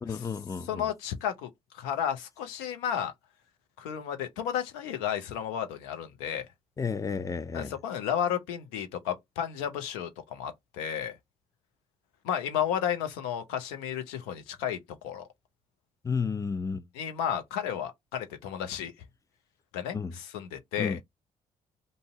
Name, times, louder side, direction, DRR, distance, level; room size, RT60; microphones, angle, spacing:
voice 1, 0.0-0.9 6.8-7.7 16.0-16.9 19.9-20.1 20.8-21.0, left 5 dB, 20° left, 0.4 m, -32 dB
voice 2, 0.7-3.1 3.8-6.5 7.5-11.2 12.2-14.8 15.0-15.3 16.9-18.9 19.7-21.0, left 9 dB, 75° left, 0.6 m, -32 dB
2.6 x 2.0 x 3.6 m
hypercardioid pair, 45°, 17 cm